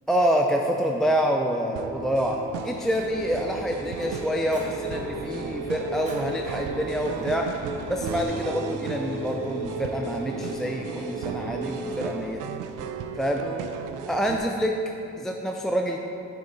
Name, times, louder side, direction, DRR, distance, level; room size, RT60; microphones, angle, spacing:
voice 1, 0.1-7.5 7.9-12.4 13.2-13.4 14.1-14.8 15.2-16.0, equal, ahead, 1 dB, 0.3 m, -27 dB
sound 1, 1.8-14.4, right 6 dB, 90° right, 0.5 m, -36 dB
Fire, 2.1-8.2, right 1 dB, 25° right, 1.1 m, -45 dB
sound 2, 3.1-12.1, right 2 dB, 60° right, 1.0 m, -35 dB
6.8 x 5.7 x 3.9 m, 2.8 s
cardioid pair, 90°, 30 cm